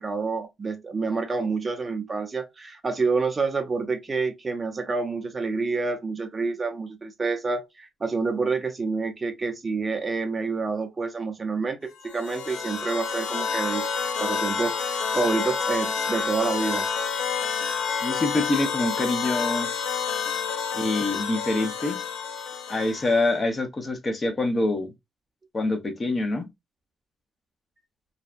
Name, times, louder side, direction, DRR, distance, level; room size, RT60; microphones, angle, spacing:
voice 1, 0.0-13.9 14.2-16.9, right 4 dB, 30° right, 0.5 m, -28 dB
sound 1, 12.0-23.3, left 6 dB, 90° left, 0.6 m, -29 dB
voice 2, 18.0-19.7 20.7-22.0 22.7-24.9 25.5-26.5, left 2 dB, 30° left, 0.6 m, -25 dB
2.6 x 2.1 x 2.3 m
cardioid pair, 110°, 0 cm